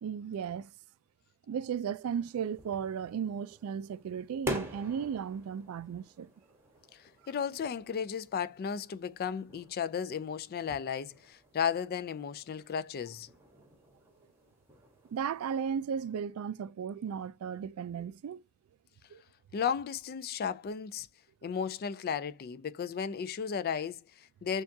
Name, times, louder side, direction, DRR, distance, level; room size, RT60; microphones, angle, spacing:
voice 1, 0.0-0.7 1.5-6.3 15.1-18.4 19.1-19.2, right 7 dB, 80° right, 0.3 m, -35 dB
sound 1, 2.0-15.9, equal, 10° right, 1.1 m, -46 dB
voice 2, 6.9-13.3 19.5-21.1 21.4-24.6, left 7 dB, 45° left, 0.3 m, -34 dB
6.9 x 2.4 x 2.7 m
head